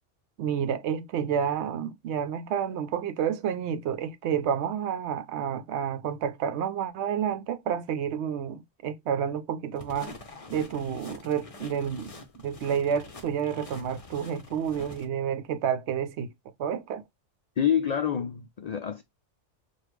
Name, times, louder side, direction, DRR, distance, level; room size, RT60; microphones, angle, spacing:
voice 1, 0.4-10.1 10.5-12.1 12.4-16.3 16.6-17.0, right 8 dB, 70° right, 0.8 m, -30 dB
sound 1, 9.8-15.1, left 2 dB, 35° left, 0.8 m, -45 dB
voice 2, 17.6-19.0, left 8 dB, 75° left, 0.3 m, -27 dB
4.9 x 2.4 x 3.1 m
omnidirectional pair, 1.2 m